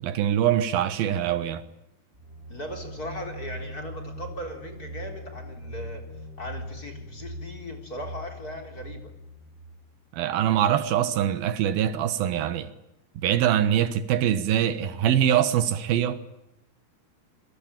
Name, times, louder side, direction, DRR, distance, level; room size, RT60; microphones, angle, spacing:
voice 1, 0.0-1.6 10.1-12.7 13.2-16.2, right 10 dB, 75° right, 3.1 m, -23 dB
sound 1, 2.1-9.9, equal, 15° right, 5.9 m, -40 dB
voice 2, 2.5-6.0 6.4-9.0, equal, 25° left, 4.1 m, -38 dB
28.0 x 22.0 x 8.9 m
omnidirectional pair, 4.3 m